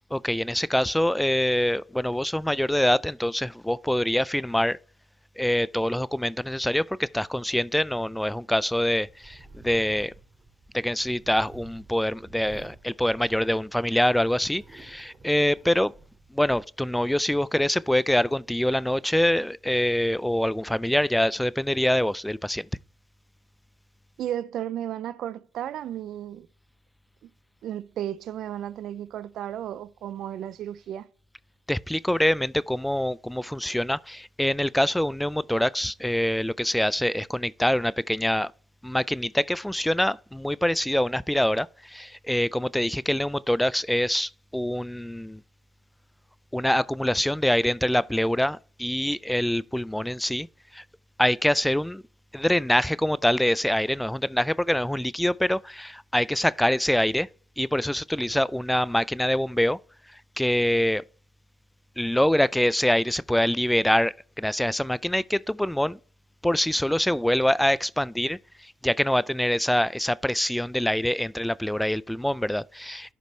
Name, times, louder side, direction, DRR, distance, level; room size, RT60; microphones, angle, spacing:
voice 1, 0.1-4.8 5.4-10.1 10.7-15.9 16.3-22.7 31.7-38.5 38.8-45.4 46.5-50.5 50.7-50.8 51.2-52.0 52.3-57.3 57.6-59.8 60.1-61.0 62.0-66.0 66.4-73.1, left 1 dB, 5° left, 0.3 m, -25 dB
sound 1, 9.0-13.8 14.2-16.6, right 3 dB, 35° right, 3.4 m, -50 dB
voice 2, 24.2-26.5 27.2-27.3 27.6-31.1, right 11 dB, 75° right, 0.4 m, -34 dB
11.5 x 5.2 x 3.1 m
supercardioid pair, 60°, 0 cm